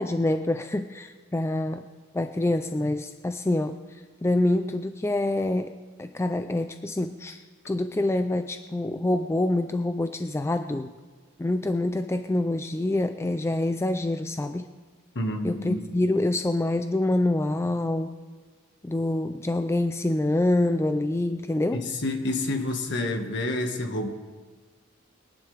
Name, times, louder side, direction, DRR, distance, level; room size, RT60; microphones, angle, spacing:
voice 1, 0.0-1.8 2.1-3.8 4.2-5.7 6.0-7.4 7.7-10.9 11.4-14.7 15.4-18.1 18.8-21.9, left 1 dB, 15° left, 8 dB, 0.4 m, -26 dB
voice 2, 15.1-15.8 21.7-24.1, left 2 dB, 60° left, 4 dB, 1.6 m, -28 dB
22.5 x 10.5 x 3.4 m, 1.5 s
head